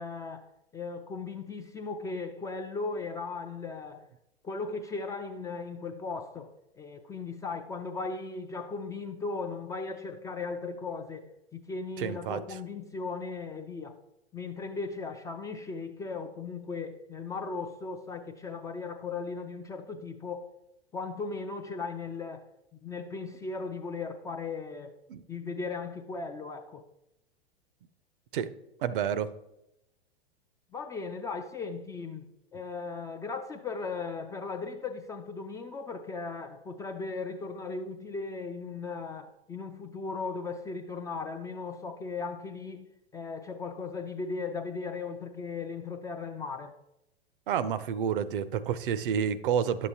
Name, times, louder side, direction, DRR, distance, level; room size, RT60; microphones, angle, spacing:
voice 1, 0.0-4.1 4.4-6.5 6.8-14.0 14.3-20.5 20.9-24.9 25.3-26.8 30.7-46.7, left 4 dB, 10° left, 0.3 m, -37 dB
voice 2, 12.0-12.6 25.1-25.2 28.3-28.5 28.8-29.3 47.5-49.9, right 8 dB, 60° right, 0.6 m, -29 dB
11.0 x 7.2 x 2.8 m
figure-of-eight pair, 100°, 30 cm